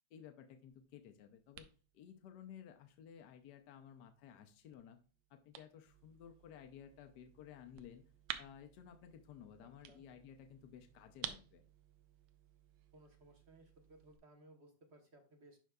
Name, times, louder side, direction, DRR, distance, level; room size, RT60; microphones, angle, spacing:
voice 1, 0.1-1.7 1.9-5.0 5.3-8.1 8.4-11.6, left 9 dB, 70° left, 5 dB, 1.2 m, -56 dB
sound 1, 0.7-14.2, right 10 dB, 80° right, 1.3 m, -54 dB
voice 2, 9.6-10.0 12.9-15.6, right 2 dB, 45° right, 3 dB, 1.2 m, -62 dB
11.0 x 4.6 x 2.3 m, 0.36 s
omnidirectional pair, 1.9 m